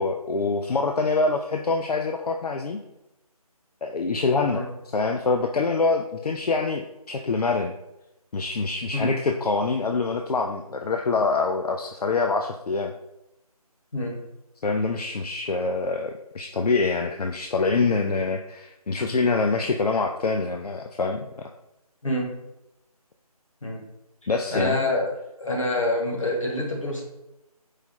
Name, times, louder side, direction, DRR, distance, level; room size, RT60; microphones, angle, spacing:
voice 1, 0.0-2.8 3.8-4.6 4.9-7.7 8.3-12.9 14.6-21.5 24.3-24.8, left 4 dB, 80° left, 4 dB, 0.4 m, -25 dB
voice 2, 24.5-25.1 25.4-27.0, left 1 dB, 55° left, -1 dB, 1.3 m, -26 dB
4.8 x 2.3 x 4.1 m, 0.92 s
figure-of-eight pair, 160°, 20 cm